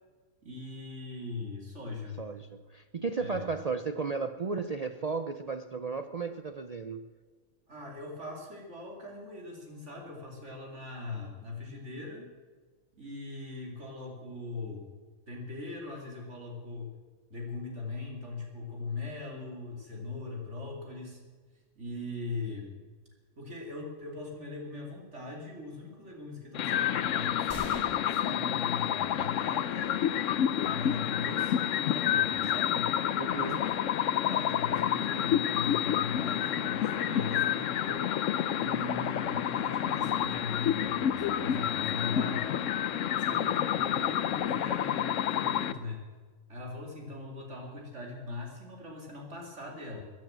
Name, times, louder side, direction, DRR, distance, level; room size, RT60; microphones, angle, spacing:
voice 1, 0.4-2.2 3.2-3.4 7.7-12.3 13.0-14.9 15.3-16.9 17.3-21.2 21.7-22.8 23.4-27.5 28.1-30.0 30.6-33.0 33.3-38.0 38.6-42.5 43.2-46.1 46.5-50.0, left 3 dB, 50° right, 0 dB, 3.0 m, -40 dB
voice 2, 2.2-7.1 33.2-33.6, right 4 dB, 75° right, 9 dB, 0.3 m, -34 dB
sound 1, 26.5-45.7, left 10 dB, 65° left, 1.0 m, -29 dB
sound 2, 27.5-29.4, equal, 10° right, 4.7 m, -45 dB
15.5 x 10.5 x 7.5 m, 1.5 s
omnidirectional pair, 1.5 m